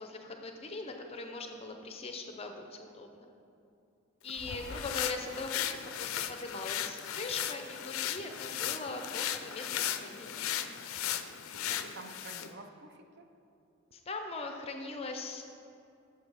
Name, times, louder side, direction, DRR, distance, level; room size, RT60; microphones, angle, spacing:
voice 1, 0.0-3.3 4.2-10.5 13.9-15.4, left 3 dB, 30° left, 4 dB, 0.5 m, -41 dB
sound 1, 4.3-12.5, left 10 dB, 80° left, 0.4 m, -36 dB
voice 2, 4.5-4.8 11.5-13.3, right 3 dB, 50° right, 6 dB, 0.5 m, -49 dB
6.7 x 5.0 x 5.6 m, 2.7 s
head